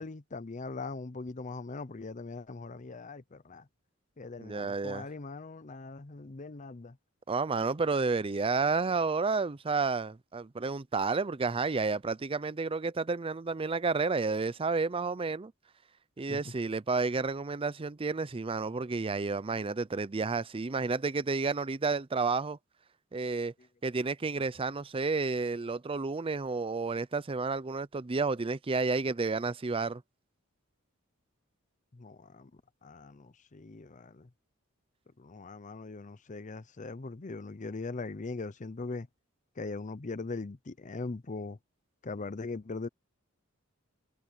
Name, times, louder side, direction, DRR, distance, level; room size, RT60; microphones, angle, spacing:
voice 1, 0.0-3.7 4.2-7.0 16.3-16.5 31.9-32.5 32.8-34.3 35.2-39.1 39.6-41.6 42.0-42.9, left 3 dB, 35° left, 0.7 m, -40 dB
voice 2, 4.4-5.1 7.3-15.5 16.2-22.6 23.1-23.5 23.8-30.0, right 4 dB, 25° right, 0.5 m, -31 dB
head